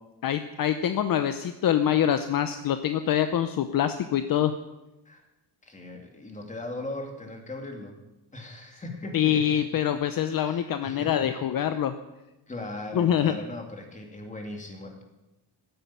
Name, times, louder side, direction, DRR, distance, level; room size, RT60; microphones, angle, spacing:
voice 1, 0.2-4.5 9.1-11.9 12.9-13.3, left 10 dB, 50° left, 9 dB, 0.8 m, -25 dB
voice 2, 5.6-7.9 8.3-9.6 10.3-11.3 12.5-15.0, left 2 dB, 15° left, 3 dB, 2.6 m, -38 dB
15.0 x 10.5 x 8.6 m, 0.99 s
cardioid pair, 170°, 44 cm